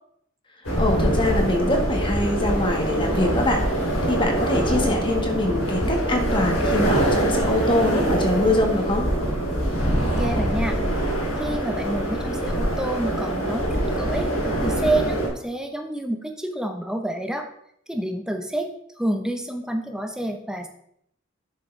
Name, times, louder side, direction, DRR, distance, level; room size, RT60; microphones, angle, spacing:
sound 1, 0.6-15.3, right 1 dB, 80° left, 3.3 m, -24 dB
voice 1, 0.8-3.6 4.1-9.1, left 2 dB, 25° left, 2 dB, 1.6 m, -24 dB
voice 2, 10.0-10.8 11.4-14.3 14.6-17.5 17.9-18.7 19.0-20.7, right 1 dB, 5° right, 4 dB, 0.9 m, -28 dB
11.0 x 6.8 x 3.3 m, 0.70 s
head